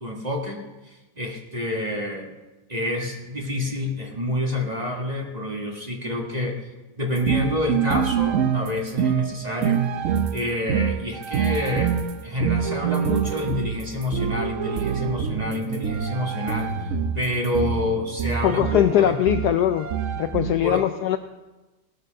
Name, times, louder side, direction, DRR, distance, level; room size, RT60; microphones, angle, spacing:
voice 1, 0.0-2.3 2.7-6.6 7.0-9.8 10.3-11.9 12.2-19.2 20.6-20.8, left 1 dB, 25° right, 0 dB, 1.4 m, -28 dB
sound 1, 7.2-20.6, right 8 dB, 65° right, 0.7 m, -26 dB
voice 2, 18.4-19.9 20.2-21.2, left 11 dB, 75° left, 9 dB, 1.0 m, -21 dB
17.5 x 6.7 x 6.4 m, 1.1 s
omnidirectional pair, 2.1 m